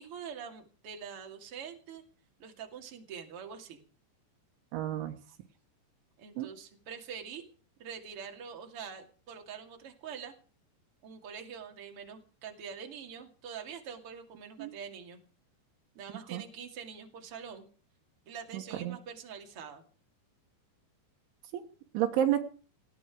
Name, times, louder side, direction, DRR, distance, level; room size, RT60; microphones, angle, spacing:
voice 1, 0.0-2.0 2.4-3.8 6.2-7.4 7.8-10.3 11.0-15.2 15.9-17.6 18.3-19.8, right 7 dB, 40° right, 4 dB, 2.7 m, -45 dB
voice 2, 4.7-5.2 6.4-6.5 14.6-14.7 16.3-16.4 18.5-19.0 21.5-21.6 21.9-22.4, right 11 dB, 85° right, 3 dB, 3.8 m, -30 dB
19.0 x 15.0 x 4.9 m, 0.38 s
omnidirectional pair, 5.3 m